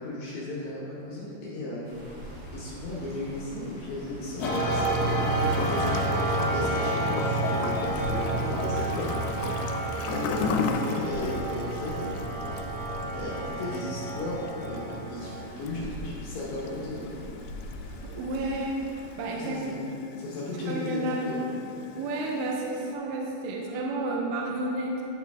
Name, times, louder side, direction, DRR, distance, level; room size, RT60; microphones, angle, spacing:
voice 1, 0.0-2.0 2.3-4.9 5.3-9.5 10.1-12.3 13.1-17.1 19.3-19.9 20.2-21.4, left 2 dB, 70° left, -6 dB, 1.9 m, -35 dB
sound 1, 1.8-19.0, equal, 45° right, 1.5 m, -44 dB
Gurgling / Toilet flush, 4.4-22.9, left 5 dB, 90° left, 2.5 m, -37 dB
sound 2, 4.4-15.6, right 2 dB, 40° left, 1.0 m, -30 dB
voice 2, 18.0-18.8 19.2-19.8 20.6-21.3 22.0-25.0, right 2 dB, 80° right, -1 dB, 2.1 m, -31 dB
10.0 x 4.9 x 3.5 m, 2.8 s
omnidirectional pair, 4.3 m